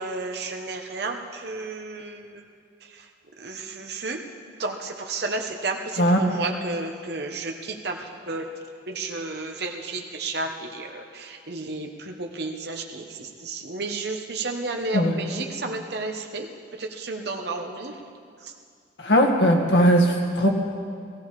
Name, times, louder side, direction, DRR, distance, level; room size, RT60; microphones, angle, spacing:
voice 1, 0.0-2.4 3.4-4.2 4.6-8.5 8.9-16.5 16.8-17.9, right 3 dB, 65° right, 2 dB, 1.2 m, -32 dB
voice 2, 19.0-20.5, equal, 85° left, 1 dB, 1.9 m, -19 dB
16.0 x 16.0 x 4.9 m, 2.2 s
head